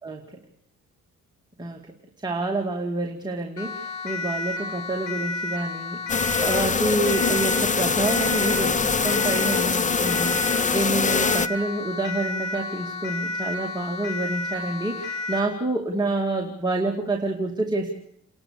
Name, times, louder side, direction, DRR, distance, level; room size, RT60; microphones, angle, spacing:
voice 1, 2.2-17.9, right 2 dB, 15° right, 0 dB, 2.4 m, -28 dB
Siren, 3.6-15.5, left 3 dB, 90° left, 4.9 m, -32 dB
sound 1, 6.1-11.5, left 5 dB, 25° left, 0.8 m, -23 dB
29.5 x 12.0 x 8.6 m, 0.70 s
cardioid pair, 90°, 30 cm